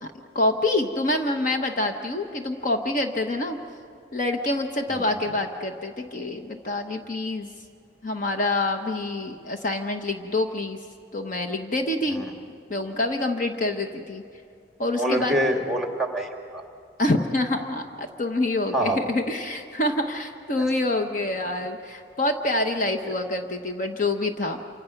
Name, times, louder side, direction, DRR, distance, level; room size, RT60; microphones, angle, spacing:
voice 1, 0.0-3.6 4.1-7.5 8.0-10.8 11.1-12.2 12.7-14.2 14.8-15.3 17.0-24.6, left 2 dB, 45° left, 5 dB, 1.0 m, -26 dB
voice 2, 4.9-5.2 12.1-12.2 14.9-16.6 18.7-19.0 23.0-23.1, right 1 dB, ahead, 2 dB, 2.3 m, -26 dB
28.5 x 26.0 x 5.9 m, 2.3 s
head